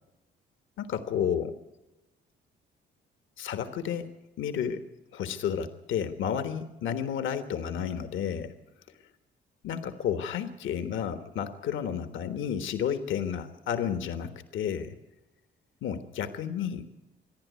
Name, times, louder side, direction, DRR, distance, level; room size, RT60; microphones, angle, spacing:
voice 1, 0.8-1.6 3.4-4.8 5.1-8.5 9.6-15.0 15.8-16.8, left 8 dB, 75° left, 9 dB, 1.4 m, -31 dB
26.5 x 10.5 x 9.4 m, 0.97 s
cardioid pair, 90°, 20 cm